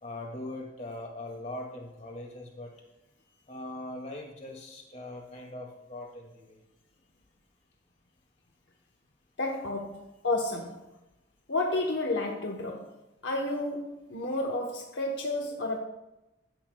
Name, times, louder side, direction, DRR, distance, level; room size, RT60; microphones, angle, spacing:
voice 1, 0.0-2.7 3.5-6.6, left 1 dB, 35° left, 2.0 m, -41 dB
voice 2, 9.4-10.9 11.5-12.9 13.2-15.8, left 2 dB, 65° left, 0.9 m, -31 dB
14.5 x 10.5 x 2.2 m
head